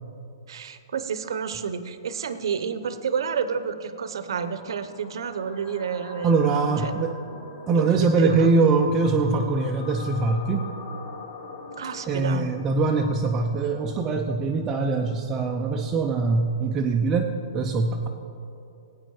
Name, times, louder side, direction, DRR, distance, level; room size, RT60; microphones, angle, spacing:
voice 1, 0.5-6.3 6.8-6.9 7.9-8.5 11.8-12.5, right 6 dB, 70° right, 12 dB, 0.8 m, -30 dB
sound 1, 4.3-14.4, left 3 dB, 45° left, 2.7 m, -43 dB
voice 2, 6.2-7.2 7.7-10.7 12.1-18.1, right 3 dB, 15° right, 2 dB, 0.4 m, -23 dB
16.5 x 9.1 x 4.8 m, 2.7 s
hypercardioid pair, 175°, 2 cm